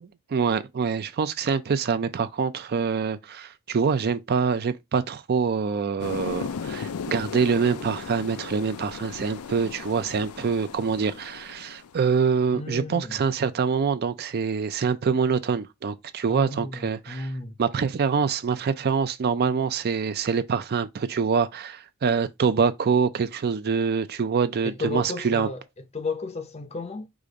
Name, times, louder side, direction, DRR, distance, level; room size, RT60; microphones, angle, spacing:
voice 1, 0.0-17.3 17.6-25.5, right 5 dB, 45° right, 0.4 m, -25 dB
sound 1, 6.0-12.1, left 6 dB, 90° left, 0.4 m, -36 dB
voice 2, 12.5-13.2 16.3-17.6 24.6-27.1, left 3 dB, 30° left, 0.5 m, -33 dB
4.9 x 2.5 x 3.9 m
head